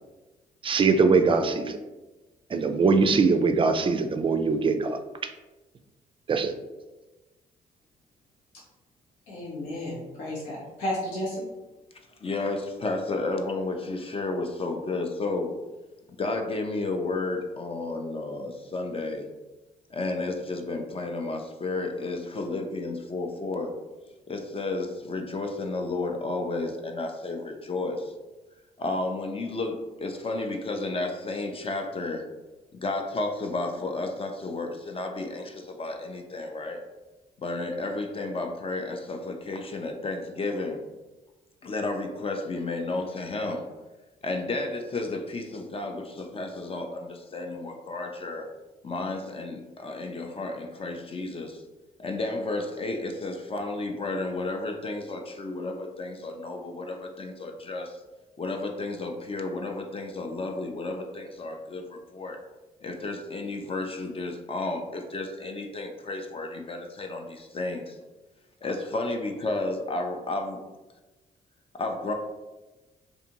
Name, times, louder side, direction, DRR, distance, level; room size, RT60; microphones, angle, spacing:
voice 1, 0.6-1.8 2.5-5.0 6.3-6.5, right 4 dB, 25° right, 6 dB, 0.4 m, -22 dB
voice 2, 9.3-11.5, left 1 dB, 80° left, -7 dB, 0.9 m, -32 dB
voice 3, 12.2-15.5 16.2-19.2 19.9-23.7 24.3-28.1 28.8-32.3 32.7-36.8 37.4-40.8 41.6-43.7 44.2-48.5 48.8-51.6 52.0-58.0 58.4-62.4 62.8-68.0 68.6-70.6 71.7-72.1, left 2 dB, 30° left, 4 dB, 0.5 m, -32 dB
2.5 x 2.5 x 2.9 m, 1.1 s
hypercardioid pair, 45°, 19 cm